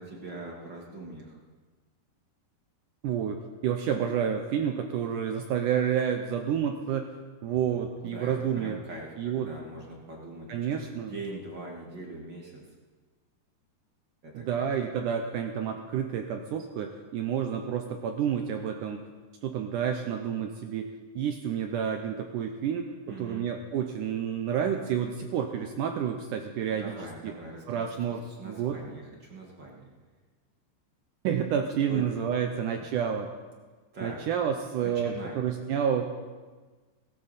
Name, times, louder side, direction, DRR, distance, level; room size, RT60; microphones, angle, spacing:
voice 1, 0.0-1.4 8.0-12.6 14.2-14.7 23.1-23.5 26.7-29.9 31.9-32.2 33.9-34.2 34.8-35.4, right 2 dB, 45° right, -2 dB, 1.5 m, -42 dB
voice 2, 3.0-7.1 7.4-8.8 9.2-9.5 10.5-11.2 14.3-19.0 19.4-20.9 21.2-22.9 23.2-26.9 27.2-27.3 27.7-28.8 31.2-33.3 34.0-36.1, right 8 dB, 80° right, 5 dB, 1.8 m, -29 dB
17.0 x 16.5 x 4.1 m, 1.4 s
omnidirectional pair, 4.6 m